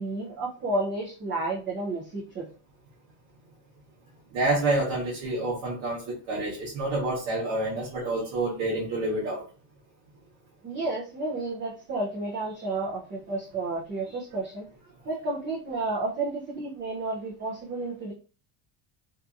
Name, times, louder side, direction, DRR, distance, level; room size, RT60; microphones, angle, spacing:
voice 1, 0.0-2.5 10.6-14.7 15.1-18.1, right 2 dB, 25° right, 0.4 m, -31 dB
voice 2, 4.3-9.4, right 2 dB, 90° right, 1.0 m, -28 dB
2.6 x 2.5 x 2.3 m
cardioid pair, 165°, 48 cm